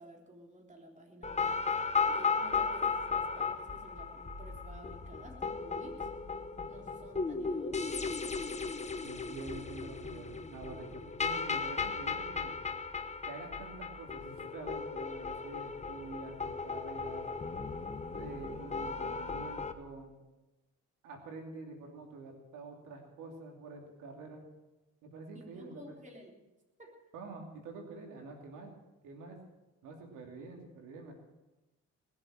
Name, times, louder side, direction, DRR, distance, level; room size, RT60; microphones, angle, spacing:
voice 1, 0.0-6.1 6.7-8.0 25.3-26.3 26.8-27.0, right 1 dB, 25° right, 0 dB, 3.6 m, -52 dB
sound 1, 1.2-19.7, left 5 dB, 20° left, 1.1 m, -36 dB
voice 2, 9.0-12.5 13.2-17.3 18.1-20.1 21.0-24.5 25.0-25.8 27.1-28.7 29.0-29.4 29.8-31.1, right 3 dB, 90° right, 2 dB, 2.8 m, -47 dB
19.5 x 7.6 x 7.6 m, 1.1 s
cardioid pair, 90°, 30 cm